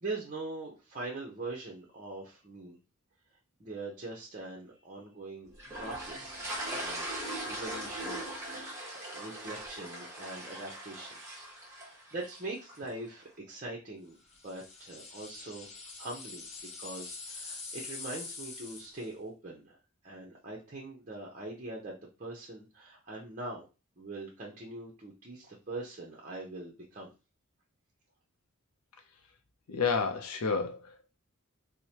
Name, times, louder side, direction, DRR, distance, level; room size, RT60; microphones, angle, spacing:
voice 1, 0.0-2.8 3.6-8.8 9.1-11.2 11.6-14.2 14.4-15.7 16.0-16.5 16.8-19.8 20.0-23.7 24.0-27.1, right 2 dB, 35° right, 0.6 m, -42 dB
sound 1, 5.6-12.9, right 1 dB, 15° right, 0.9 m, -40 dB
sound 2, 14.3-19.1, left 4 dB, 30° left, 0.6 m, -44 dB
voice 2, 29.7-31.1, left 5 dB, 85° left, 0.5 m, -30 dB
4.6 x 2.1 x 2.8 m
head